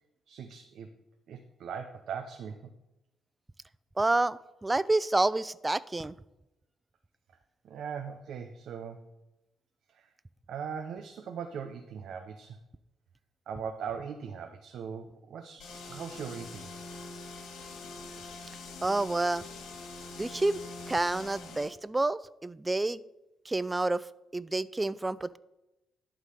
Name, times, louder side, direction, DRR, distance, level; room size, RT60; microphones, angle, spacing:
voice 1, 0.3-0.9 1.3-2.6 7.6-9.0 9.9-10.1 10.5-12.6 13.5-16.7, right 7 dB, 70° right, 5 dB, 0.7 m, -40 dB
voice 2, 4.0-6.1 18.8-19.4 20.2-20.6 20.9-23.0 23.5-24.0 24.3-25.4, right 2 dB, 15° right, 18 dB, 0.3 m, -29 dB
sound 1, 15.6-21.8, left 3 dB, 80° left, 2.0 m, -44 dB
11.5 x 3.8 x 6.6 m, 0.94 s
cardioid pair, 90°, 0 cm